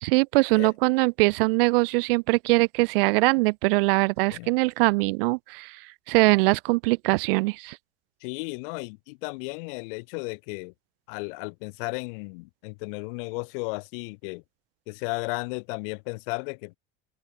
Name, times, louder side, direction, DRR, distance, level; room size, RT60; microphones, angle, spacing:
voice 1, 0.0-5.8 6.1-7.8, right 25 dB, 70° right, 1.0 m, -22 dB
voice 2, 8.2-10.7 11.1-14.4 14.9-16.8, left 31 dB, 65° left, 3.8 m, -34 dB
supercardioid pair, 145°, 30 cm